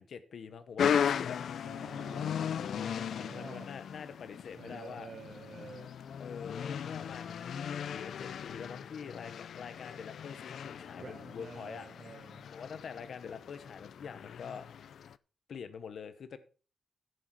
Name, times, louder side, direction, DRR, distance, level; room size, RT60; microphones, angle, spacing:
voice 1, 0.0-1.7 2.5-5.1 6.2-7.5 7.9-11.9 12.4-14.6 15.5-16.4, left 6 dB, 60° left, 1.0 m, -45 dB
sound 1, 0.8-15.1, left 8 dB, 85° left, 0.5 m, -37 dB
voice 2, 1.6-3.7 4.5-5.9 10.9-12.5, right 5 dB, 55° right, 1.2 m, -49 dB
15.5 x 6.4 x 4.6 m
wide cardioid pair, 165°, 0 cm